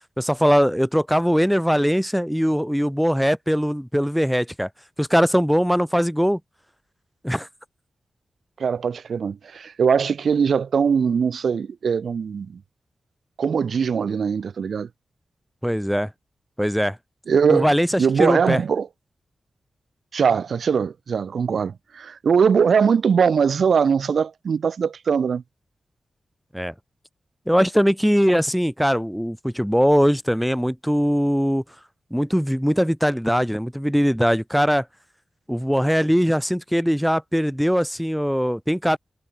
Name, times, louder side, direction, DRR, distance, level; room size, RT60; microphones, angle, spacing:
voice 1, 0.2-4.7 5.0-6.4 7.2-7.5 15.6-16.1 16.6-17.0 17.5-18.6 26.5-26.7 27.5-31.6 32.1-34.8 35.5-39.0, equal, ahead, 1.7 m, -21 dB
voice 2, 8.6-12.6 13.4-14.9 17.3-17.7 18.0-18.9 20.1-25.4, right 6 dB, 65° right, 1.9 m, -21 dB
wide cardioid pair, 175°, 0 cm